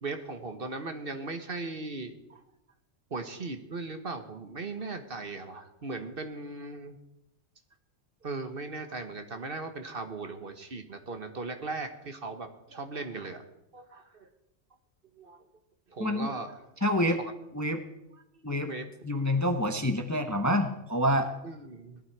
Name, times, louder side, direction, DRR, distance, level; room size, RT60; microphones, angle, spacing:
voice 1, 0.0-2.4 3.1-7.0 8.2-13.4 13.7-14.3 15.1-15.4 15.9-16.7 17.1-17.3 18.1-19.1 21.4-22.0, right 3 dB, 45° right, 7 dB, 1.3 m, -38 dB
voice 2, 16.0-16.3 16.8-17.2 17.5-17.8 18.4-18.7 19.0-21.3, equal, 15° left, 6 dB, 0.9 m, -27 dB
18.0 x 12.0 x 4.7 m, 0.86 s
omnidirectional pair, 1.3 m